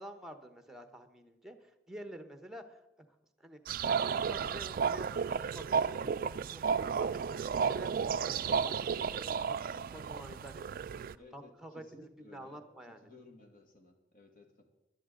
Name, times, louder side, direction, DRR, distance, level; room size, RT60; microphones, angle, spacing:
voice 1, 0.0-3.1 3.4-6.2 6.5-10.8 11.3-13.1, right 1 dB, ahead, 7 dB, 1.0 m, -49 dB
sound 1, 3.7-11.1, right 6 dB, 50° right, 0.3 m, -33 dB
voice 2, 11.2-14.7, left 2 dB, 50° left, 4 dB, 1.9 m, -57 dB
sound 2, 11.2-11.8, left 1 dB, 25° left, 4.5 m, -66 dB
19.5 x 11.5 x 3.8 m, 0.97 s
head